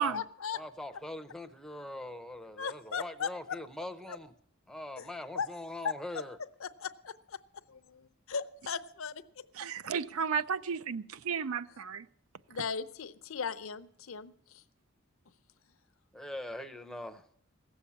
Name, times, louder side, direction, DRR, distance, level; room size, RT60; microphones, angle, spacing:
voice 1, 0.0-0.6 2.6-3.6 4.1-4.2 5.0-5.1 5.3-5.5 5.8-6.2 6.6-7.4 7.7-9.2 12.5-14.6, left 6 dB, 70° left, 0.7 m, -37 dB
voice 2, 0.5-4.3 4.7-6.4 16.1-17.3, left 1 dB, ahead, 0.6 m, -42 dB
voice 3, 9.5-12.1, right 6 dB, 80° right, 0.5 m, -33 dB
16.5 x 7.1 x 8.5 m
head